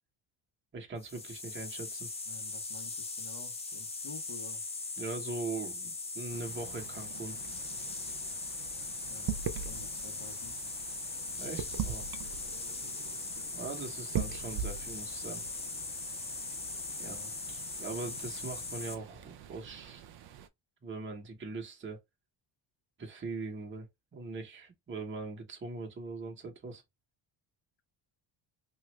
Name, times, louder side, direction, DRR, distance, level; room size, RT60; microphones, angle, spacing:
voice 1, 0.7-2.1 5.0-7.4 11.4-12.1 13.5-15.4 17.0-17.2 17.5-20.0 20.8-22.0 23.0-23.9 24.1-26.8, right 3 dB, 25° right, 0.8 m, -41 dB
sound 1, 1.0-18.9, left 3 dB, 15° left, 0.4 m, -40 dB
voice 2, 2.2-4.6 9.0-10.6 16.8-17.3, left 3 dB, 70° left, 1.4 m, -51 dB
sound 2, 6.3-20.5, right 8 dB, 55° right, 0.5 m, -42 dB
3.0 x 2.4 x 3.0 m
cardioid pair, 145°, 47 cm